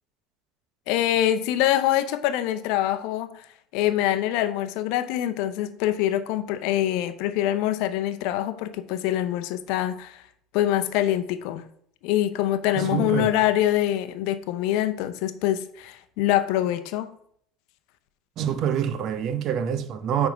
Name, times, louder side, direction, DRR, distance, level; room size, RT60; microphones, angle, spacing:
voice 1, 0.9-3.5 3.7-10.2 10.5-11.7 12.0-17.1, left 12 dB, 65° left, 0.7 m, -24 dB
voice 2, 12.8-13.4 18.4-20.3, right 8 dB, 50° right, 0.8 m, -26 dB
9.0 x 3.5 x 5.3 m
hypercardioid pair, 70°, 0 cm